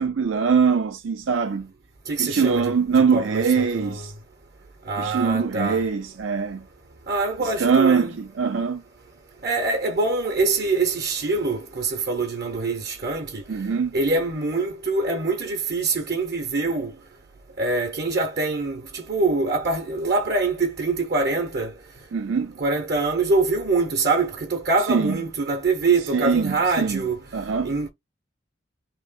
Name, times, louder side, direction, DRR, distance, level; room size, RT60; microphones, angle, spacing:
voice 1, 0.0-1.7 2.2-4.1 5.0-6.6 7.4-8.8 13.5-13.9 22.1-22.5 24.9-25.2 26.1-27.0 27.3-27.7, right 5 dB, 90° right, 0.5 m, -22 dB
voice 2, 2.1-4.1 4.9-5.8 7.1-8.1 9.4-13.4 13.9-16.9 17.6-21.7 22.6-27.2 27.6-27.9, right 3 dB, 55° right, 0.9 m, -24 dB
3.0 x 2.9 x 4.1 m
head